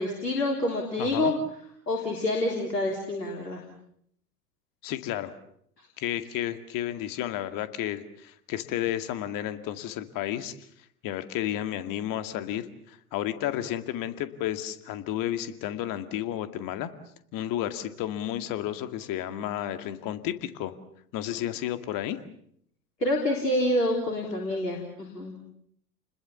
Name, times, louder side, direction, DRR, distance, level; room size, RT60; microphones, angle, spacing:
voice 1, 0.0-1.3 1.9-3.6 23.0-25.3, left 1 dB, 85° left, 1 dB, 3.8 m, -27 dB
voice 2, 1.0-1.3 4.8-5.3 6.0-10.5 11.0-16.9 17.3-20.7 21.1-22.2, left 12 dB, 45° left, 10 dB, 2.2 m, -32 dB
30.0 x 21.0 x 7.2 m, 0.70 s
figure-of-eight pair, 80°, 47 cm